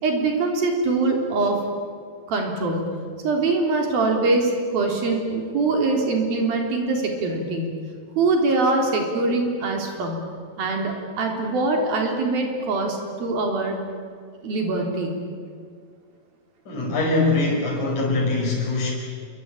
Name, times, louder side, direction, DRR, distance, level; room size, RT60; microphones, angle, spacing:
voice 1, 0.0-1.6 2.3-2.8 3.2-7.7 8.2-10.2 10.6-13.8 14.4-15.1, right 3 dB, 70° right, 2 dB, 5.3 m, -23 dB
voice 2, 16.7-18.9, left 3 dB, 55° left, -3 dB, 6.6 m, -22 dB
27.0 x 23.0 x 8.9 m, 2.1 s
omnidirectional pair, 4.3 m